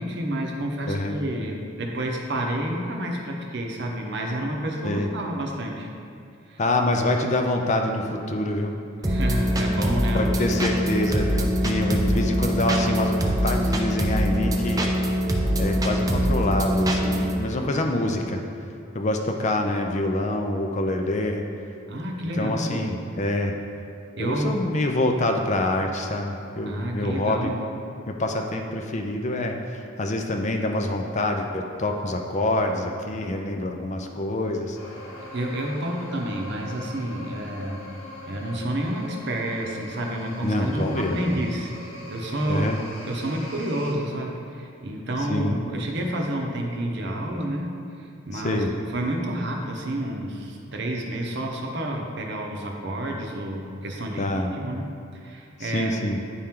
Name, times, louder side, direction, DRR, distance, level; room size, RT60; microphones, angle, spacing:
voice 1, 0.0-5.9 6.5-6.6 9.0-10.5 21.9-23.0 24.2-24.6 26.7-27.6 35.3-37.8 38.3-41.7 42.1-42.7 43.0-47.7 48.3-48.6 48.9-56.0, right 1 dB, 55° right, 1 dB, 0.8 m, -29 dB
voice 2, 0.9-1.2 4.8-5.1 6.6-8.7 10.1-14.9 15.6-18.4 18.9-21.5 22.4-23.5 24.2-27.5 28.1-34.8 40.4-41.3 42.5-42.8 45.3-45.6 48.3-48.7 54.2-54.5 55.6-56.2, left 1 dB, 35° left, 3 dB, 0.5 m, -26 dB
sound 1, 9.0-17.4, equal, 15° right, 0.5 m, -23 dB
sound 2, 34.7-43.9, left 2 dB, 80° left, 1.5 m, -41 dB
9.9 x 4.4 x 3.7 m, 2.5 s
head